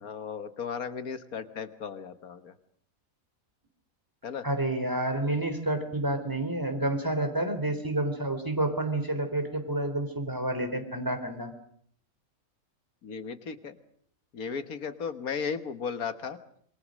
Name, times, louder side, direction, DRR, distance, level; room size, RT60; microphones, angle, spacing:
voice 1, 0.0-2.5 4.2-4.5 13.0-13.8 14.3-16.4, left 6 dB, 80° left, 10 dB, 1.9 m, -35 dB
voice 2, 4.4-11.5, right 1 dB, 15° right, 6 dB, 3.6 m, -29 dB
27.5 x 22.0 x 6.5 m, 0.63 s
omnidirectional pair, 1.5 m